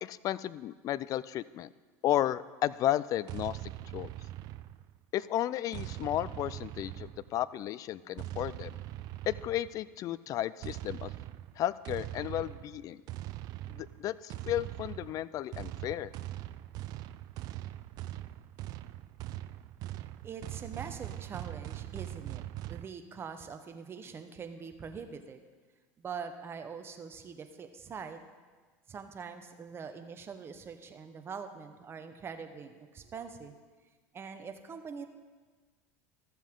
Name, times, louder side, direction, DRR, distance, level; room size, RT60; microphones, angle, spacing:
voice 1, 0.0-1.7 2.0-3.6 3.9-4.1 5.1-8.7 9.3-11.1 11.6-13.0 13.7-16.1, left 12 dB, 45° left, 18 dB, 0.3 m, -33 dB
sound 1, 3.3-5.0 5.7-7.5 8.2-9.8 10.6-22.9, right 15 dB, 55° right, 0.4 m, -42 dB
voice 2, 20.2-22.4 22.7-25.4 26.0-28.2 28.9-33.6 34.1-35.1, right 6 dB, 30° right, 7 dB, 1.0 m, -43 dB
13.5 x 7.2 x 3.7 m, 1.4 s
supercardioid pair, 100°, 8 cm